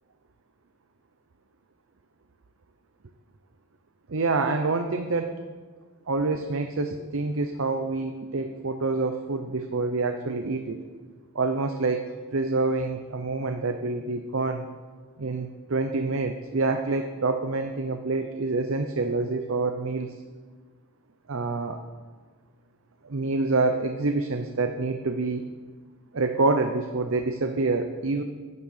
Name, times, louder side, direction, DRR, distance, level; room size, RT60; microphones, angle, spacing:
voice 1, 4.1-5.4 6.1-10.8 11.3-14.7 15.2-20.1 21.3-21.8 23.0-25.4 26.1-28.2, right 3 dB, 70° right, 6 dB, 0.7 m, -27 dB
10.0 x 9.6 x 6.4 m, 1.5 s
head